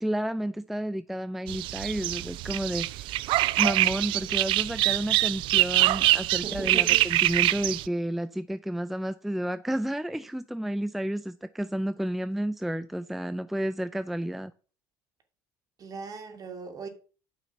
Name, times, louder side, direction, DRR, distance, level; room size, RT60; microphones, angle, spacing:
voice 1, 0.0-14.5, right 1 dB, ahead, 0.4 m, -31 dB
sound 1, 1.5-7.9, right 17 dB, 60° right, 0.4 m, -24 dB
voice 2, 6.4-7.1 15.8-16.9, right 5 dB, 40° right, 2.4 m, -38 dB
9.2 x 5.7 x 5.6 m
supercardioid pair, 90°, 10 cm